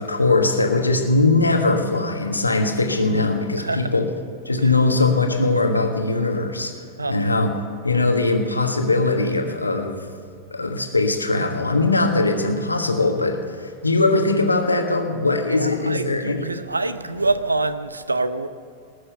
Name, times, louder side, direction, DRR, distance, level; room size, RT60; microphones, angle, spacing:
voice 1, 0.0-4.1 4.4-7.5 7.8-10.0 10.5-16.5, left 3 dB, 80° left, 4 dB, 1.4 m, -21 dB
voice 2, 3.6-3.9 4.6-4.7 7.0-7.3 15.5-18.5, right 2 dB, 80° right, 13 dB, 0.7 m, -26 dB
19.5 x 6.6 x 7.9 m, 2.4 s
figure-of-eight pair, 90°, 0 cm